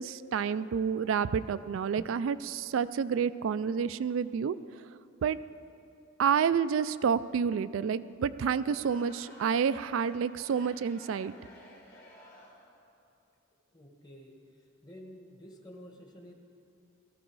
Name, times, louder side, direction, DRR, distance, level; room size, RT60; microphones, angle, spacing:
voice 1, 0.0-4.6 5.2-5.4 6.2-11.3, right 7 dB, 80° right, 14 dB, 0.3 m, -29 dB
Crowd, 8.6-12.8, left 1 dB, 60° left, 3.5 m, -54 dB
voice 2, 13.7-14.4 14.8-16.3, equal, 20° left, 2 dB, 1.4 m, -50 dB
18.0 x 13.5 x 4.7 m, 2.6 s
head